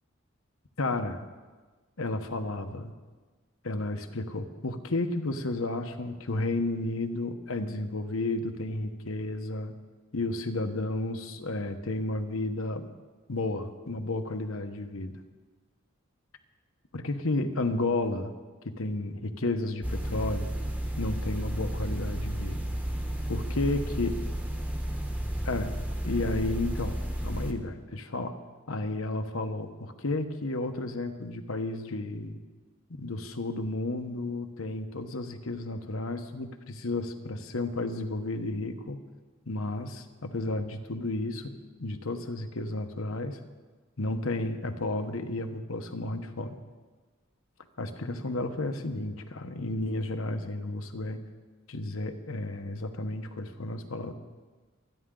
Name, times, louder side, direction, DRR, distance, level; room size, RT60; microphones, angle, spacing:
voice 1, 0.8-1.2 2.0-2.9 3.6-9.7 10.1-12.9 13.3-15.1 16.9-18.3 18.6-20.5 21.0-22.6 23.3-24.1 25.4-25.7 26.0-27.0 27.2-28.4 28.7-32.4 32.9-39.0 39.5-41.5 41.8-43.4 44.0-46.6 47.8-51.2 51.7-54.1, left 2 dB, 90° left, 7 dB, 1.1 m, -32 dB
sound 1, 19.8-27.5, equal, 10° right, 1.1 m, -32 dB
24.5 x 10.0 x 3.9 m, 1.4 s
head